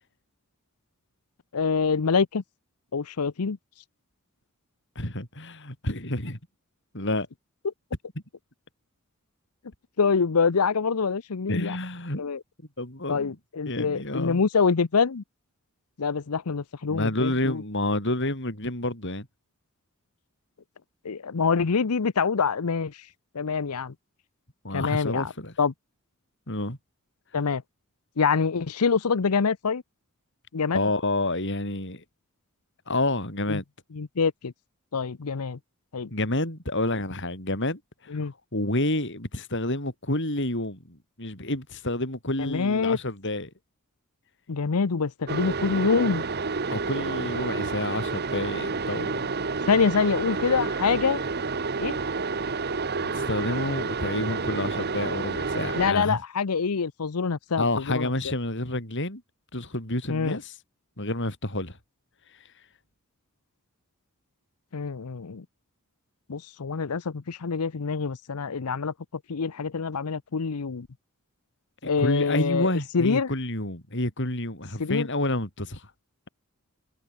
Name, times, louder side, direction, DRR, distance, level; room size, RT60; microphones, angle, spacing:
voice 1, 1.5-2.4 2.9-3.6 7.6-7.7 10.0-11.8 12.2-12.4 13.1-15.2 16.0-17.6 21.0-23.0 23.3-23.9 24.7-25.3 25.6-25.7 27.3-27.6 28.2-29.8 30.5-30.8 33.5-33.6 33.9-34.5 34.9-35.6 35.9-36.1 38.1-38.3 42.4-43.0 44.5-46.2 49.7-51.2 51.8-52.0 55.8-58.1 60.1-60.4 64.7-65.4 66.3-68.9 69.3-70.9 71.9-72.7 72.9-73.3 74.8-75.1, left 5 dB, 90° left, 0.7 m, -25 dB
voice 2, 5.0-6.4 6.9-7.3 11.5-12.3 12.8-13.3 13.7-14.4 16.9-19.3 24.6-25.5 26.5-26.8 30.7-32.0 32.9-33.6 36.1-38.1 38.5-43.5 46.7-49.3 53.1-56.2 57.6-59.2 59.5-60.5 61.0-61.8 71.8-75.9, left 1 dB, 55° left, 7.8 m, -29 dB
sound 1, 45.3-55.9, right 4 dB, 45° right, 1.1 m, -29 dB
head